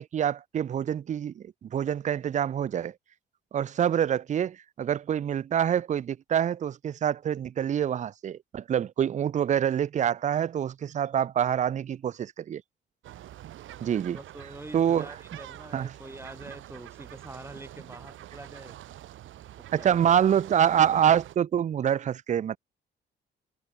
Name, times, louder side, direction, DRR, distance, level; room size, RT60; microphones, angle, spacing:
voice 1, 0.0-2.9 3.5-12.6 13.8-14.2 14.7-15.1 15.7-15.9 19.7-22.6, right 9 dB, 40° right, 0.4 m, -26 dB
sound 1, 13.0-21.4, right 13 dB, 80° right, 2.0 m, -46 dB
voice 2, 14.1-18.8 19.8-20.0, right 2 dB, 10° right, 4.6 m, -45 dB
cardioid pair, 90°, 20 cm